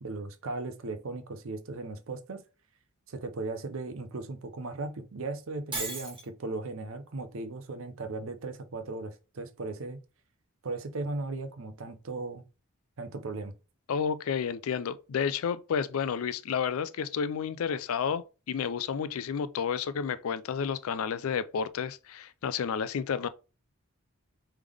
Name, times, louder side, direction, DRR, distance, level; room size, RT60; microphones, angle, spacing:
voice 1, 0.0-2.4 3.1-10.0 10.6-12.4 13.0-13.5, right 3 dB, 65° right, 0.6 m, -37 dB
Shatter, 5.7-6.3, right 3 dB, 25° right, 1.3 m, -35 dB
voice 2, 13.9-23.3, left 7 dB, 70° left, 0.4 m, -31 dB
3.5 x 3.3 x 3.4 m
head